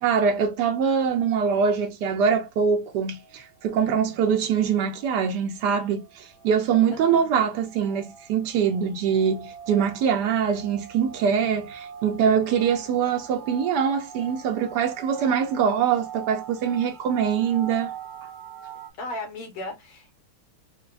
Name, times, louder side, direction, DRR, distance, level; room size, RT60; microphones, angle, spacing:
voice 1, 0.0-17.9, right 7 dB, 85° right, 0.9 m, -23 dB
sound 1, 2.7-18.9, right 7 dB, 45° right, 1.8 m, -43 dB
voice 2, 6.9-7.3 19.0-20.2, left 2 dB, 85° left, 2.1 m, -36 dB
4.5 x 2.2 x 2.4 m
omnidirectional pair, 2.4 m